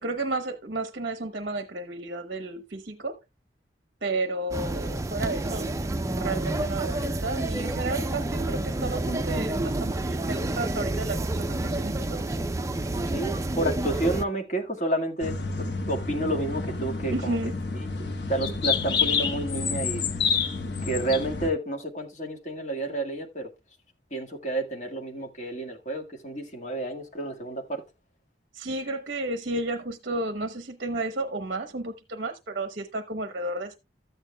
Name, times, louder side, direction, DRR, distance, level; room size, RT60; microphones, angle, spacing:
voice 1, 0.0-3.2 4.0-5.7 6.1-12.4 17.1-17.5 28.5-33.7, right 2 dB, 55° right, 0.8 m, -32 dB
sound 1, 4.5-14.2, right 2 dB, 15° right, 0.4 m, -29 dB
voice 2, 13.1-17.4 18.0-20.0 20.8-23.5 24.1-27.8, right 1 dB, 40° left, 1.8 m, -30 dB
sound 2, 15.2-21.5, left 5 dB, 60° left, 1.2 m, -29 dB
13.0 x 8.9 x 2.3 m
head